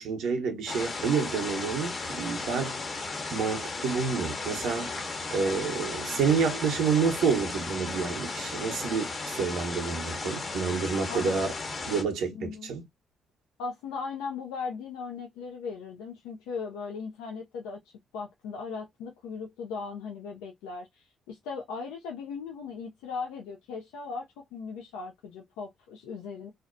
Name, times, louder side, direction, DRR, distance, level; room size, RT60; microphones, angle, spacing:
voice 1, 0.0-2.8 3.3-4.9 5.3-11.5 11.9-12.8, right 5 dB, 80° right, 0.7 m, -28 dB
sound 1, 0.7-12.0, left 3 dB, 45° left, 0.9 m, -35 dB
voice 2, 12.3-12.7 13.6-26.5, left 5 dB, 90° left, 0.3 m, -38 dB
2.5 x 2.1 x 2.4 m
supercardioid pair, 60°, 0 cm